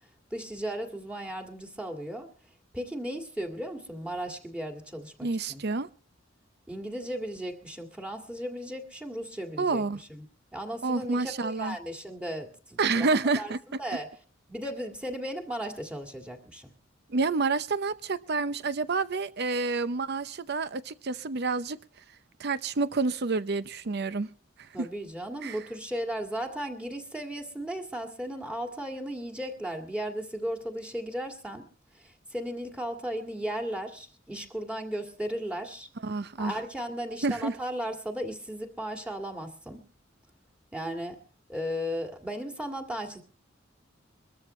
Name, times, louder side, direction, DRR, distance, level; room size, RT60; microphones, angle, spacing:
voice 1, 0.3-2.3 2.7-5.6 6.7-10.3 10.5-13.1 13.4-13.5 13.8-14.1 14.5-16.7 24.7-31.6 31.9-35.9 36.4-39.8 40.7-41.2 41.5-43.2, equal, 5° right, 1.9 m, -36 dB
voice 2, 5.2-5.9 9.6-10.0 10.8-11.8 12.8-13.6 17.1-21.8 22.4-24.3 24.8-24.9 25.4-25.6 36.0-36.5 37.2-37.5, right 3 dB, 60° right, 0.7 m, -28 dB
22.5 x 13.5 x 3.2 m
head